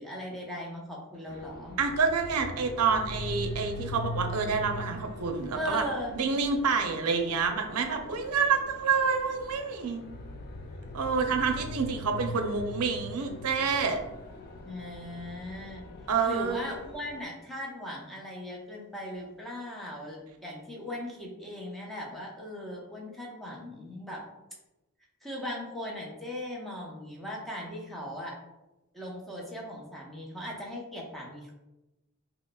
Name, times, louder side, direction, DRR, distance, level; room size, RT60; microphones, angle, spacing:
voice 1, 0.0-1.8 5.5-6.2 14.6-15.9 16.2-24.2 25.2-28.4 28.9-31.5, left 1 dB, ahead, -4 dB, 0.7 m, -38 dB
sound 1, 1.3-17.2, left 1 dB, 45° left, 0.3 m, -41 dB
voice 2, 1.8-5.9 6.2-10.0 10.9-14.0 16.1-16.7, right 5 dB, 85° right, 5 dB, 0.5 m, -28 dB
5.2 x 2.0 x 2.2 m, 0.98 s
head